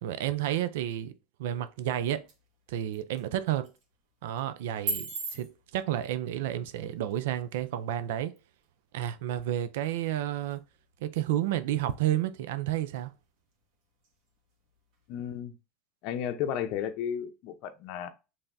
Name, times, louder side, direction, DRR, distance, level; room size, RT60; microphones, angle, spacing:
voice 1, 0.0-1.1 1.4-2.3 2.7-3.7 4.2-8.3 8.9-10.6 11.0-13.1, right 12 dB, 85° right, 0.5 m, -31 dB
sound 1, 1.4-15.4, right 4 dB, 60° right, 1.7 m, -45 dB
voice 2, 15.1-15.5 16.0-18.1, left 9 dB, 55° left, 0.8 m, -33 dB
5.6 x 3.4 x 2.7 m
supercardioid pair, 145°, 0 cm